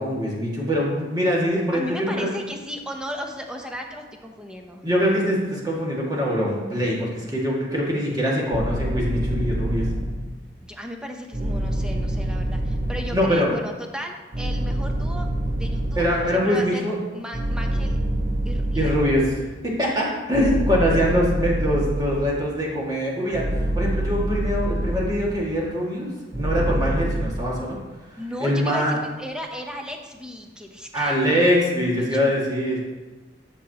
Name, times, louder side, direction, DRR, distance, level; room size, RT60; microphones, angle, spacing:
voice 1, 0.0-2.3 4.8-9.9 13.1-13.5 15.9-17.0 18.7-27.8 28.4-29.0 30.9-32.8, equal, 20° right, -4 dB, 2.1 m, -23 dB
voice 2, 1.7-4.8 10.6-16.9 17.1-18.0 18.4-19.1 28.2-31.2 31.9-32.3, equal, 5° right, 2 dB, 0.8 m, -35 dB
sound 1, 8.5-10.3 11.3-13.3 14.3-16.3 17.3-19.5 20.3-22.4 23.3-25.3 26.3-27.3, right 1 dB, 50° right, 1.2 m, -26 dB
11.0 x 6.8 x 2.9 m, 1.2 s
head